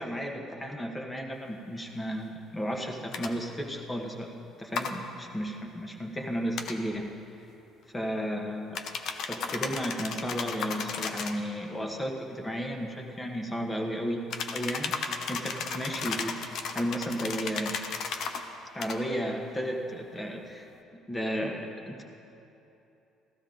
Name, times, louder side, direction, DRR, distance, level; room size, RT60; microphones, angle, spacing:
voice 1, 0.0-4.3 4.6-7.1 7.9-8.8 9.3-14.3 14.5-16.4 16.7-17.8 18.7-20.6 21.1-22.0, equal, 15° left, 2 dB, 1.4 m, -33 dB
sound 1, 3.1-3.3 4.7-4.9 6.5-6.8 8.7-11.4 14.3-18.4 18.8-19.0, left 5 dB, 65° left, 0.8 m, -34 dB
15.5 x 12.5 x 3.9 m, 2.9 s
cardioid pair, 95°, 0 cm